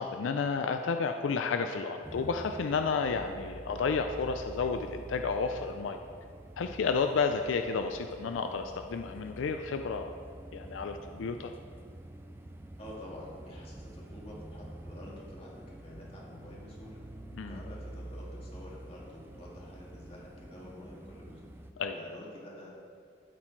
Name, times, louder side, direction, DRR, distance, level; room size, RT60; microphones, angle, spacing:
voice 1, 0.0-6.0 6.6-10.1 10.5-11.5 17.3-17.6 21.8-22.0, left 5 dB, 85° left, 6 dB, 0.4 m, -31 dB
sound 1, 2.0-21.7, right 1 dB, 10° right, 0.3 m, -47 dB
voice 2, 12.8-17.0 17.5-21.4 21.9-22.8, left 1 dB, 30° left, -4 dB, 1.8 m, -48 dB
12.5 x 4.4 x 4.5 m, 2.2 s
head